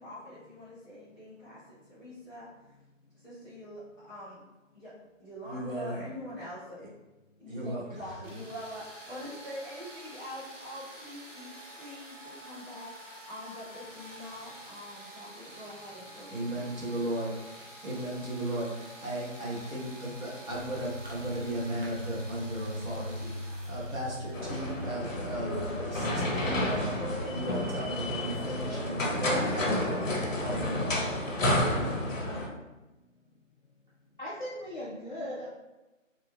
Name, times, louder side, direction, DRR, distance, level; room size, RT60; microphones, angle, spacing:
voice 1, 0.0-2.5 3.1-4.4 4.7-4.9 5.2-6.8 7.4-16.7, equal, 5° left, -25 dB, 1.0 m, -44 dB
voice 2, 5.4-6.1 6.8-6.9 7.5-7.8 16.3-27.0 27.3-30.1 30.4-31.2, right 1 dB, 85° right, -6 dB, 1.5 m, -36 dB
sound 1, 8.2-25.9, right 1 dB, 70° right, 1.0 m, -48 dB
sound 2, 20.5-29.6, left 1 dB, 45° right, 0.7 m, -42 dB
sound 3, 24.3-32.5, left 1 dB, 75° left, 0.8 m, -30 dB
voice 3, 34.2-35.5, equal, 40° left, -9 dB, 0.5 m, -38 dB
3.2 x 2.1 x 3.2 m, 1.1 s
figure-of-eight pair, 160°, 39 cm